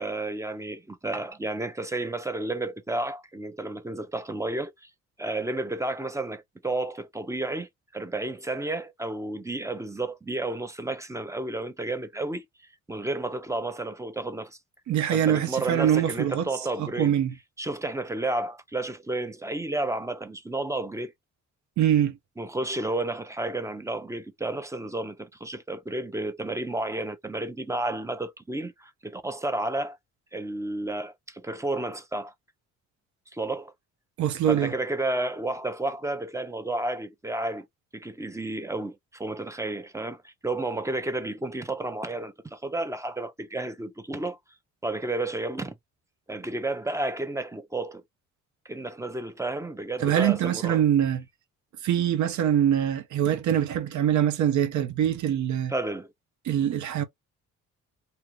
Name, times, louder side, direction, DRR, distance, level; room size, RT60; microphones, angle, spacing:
voice 1, 0.0-4.9 5.2-12.5 12.9-14.6 15.1-17.1 17.6-21.1 22.4-30.0 30.3-32.3 33.3-33.7 34.5-37.7 37.9-44.4 44.8-45.8 46.3-48.0 48.7-50.8 55.7-56.1, right 2 dB, 10° right, 0.5 m, -31 dB
voice 2, 14.9-16.5 16.8-17.3 21.8-22.2 34.2-34.7 50.0-51.2 51.8-55.7 56.4-57.0, right 10 dB, 70° right, 0.7 m, -24 dB
2.8 x 2.3 x 3.1 m
cardioid pair, 90°, 30 cm